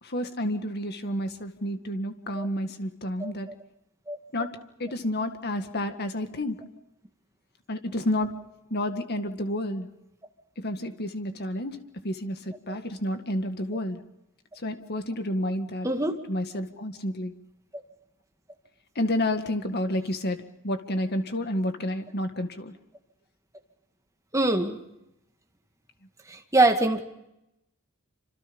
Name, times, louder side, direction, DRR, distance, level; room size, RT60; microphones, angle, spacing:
voice 1, 0.0-3.5 4.3-4.5 4.8-6.6 7.7-8.3 8.7-9.9 10.6-14.0 14.6-15.9 16.3-17.4 19.0-22.7, left 1 dB, 45° left, 7 dB, 2.0 m, -30 dB
voice 2, 24.3-24.8 26.5-27.0, right 2 dB, 15° right, 4 dB, 2.1 m, -22 dB
28.0 x 26.5 x 5.4 m, 0.87 s
head